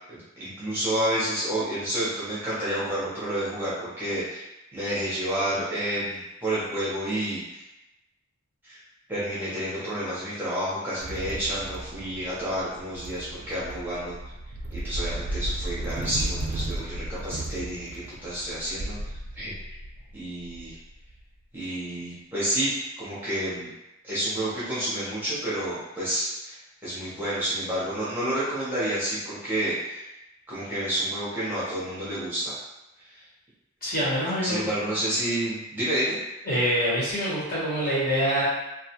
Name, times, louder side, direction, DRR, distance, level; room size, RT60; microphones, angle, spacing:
voice 1, 0.1-4.4 4.7-7.6 8.6-8.8 9.1-14.2 14.7-19.5 20.1-20.8 21.5-22.7 23.0-23.7 24.0-30.1 30.5-32.5 33.1-33.2 34.4-36.2, right 1 dB, 10° right, -10 dB, 0.7 m, -30 dB
sound 1, 11.0-21.2, right 1 dB, 90° right, 0.4 m, -35 dB
voice 2, 33.8-34.9 36.5-38.4, equal, 45° left, -9 dB, 1.0 m, -26 dB
2.4 x 2.3 x 2.8 m, 0.96 s
head